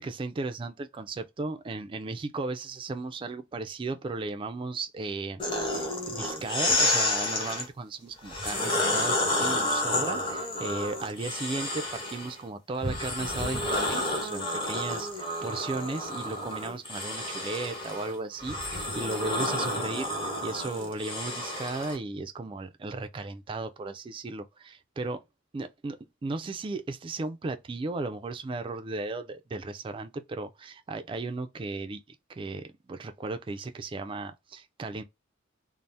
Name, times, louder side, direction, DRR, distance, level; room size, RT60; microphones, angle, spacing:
voice 1, 0.0-20.1 20.4-25.2 25.5-26.0 26.2-32.0 32.3-35.0, right 3 dB, 25° right, 0.3 m, -35 dB
sound 1, 5.4-7.7 8.2-12.3 12.8-22.0, left 1 dB, 25° left, 0.8 m, -30 dB
2.6 x 2.0 x 3.2 m
head